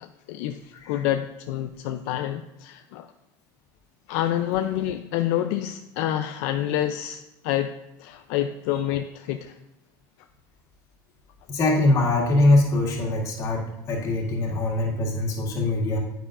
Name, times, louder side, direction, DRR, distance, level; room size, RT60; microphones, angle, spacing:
voice 1, 0.0-3.1 4.1-7.7 8.0-9.5, left 12 dB, 75° left, 7 dB, 0.5 m, -28 dB
voice 2, 11.5-16.0, left 2 dB, 40° left, -1 dB, 2.1 m, -22 dB
9.9 x 8.9 x 2.5 m, 0.92 s
cardioid pair, 150°, 9 cm